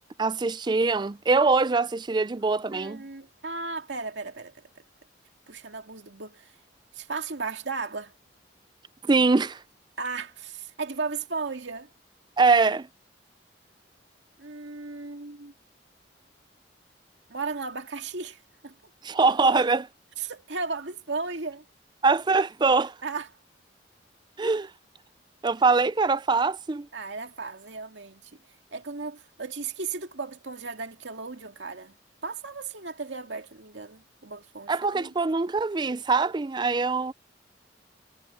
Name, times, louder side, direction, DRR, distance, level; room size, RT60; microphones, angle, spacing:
voice 1, 0.2-3.0 9.0-9.6 12.4-12.9 19.0-19.9 22.0-22.9 24.4-24.7 25.4-26.9 34.7-37.1, right 4 dB, 25° right, 0.4 m, -23 dB
voice 2, 2.7-4.7 5.5-6.5 6.9-8.1 10.0-11.9 14.4-15.5 17.3-18.7 20.2-21.6 23.0-23.3 26.9-28.4 28.7-32.0 32.2-35.1, right 4 dB, 80° right, 2.1 m, -35 dB
head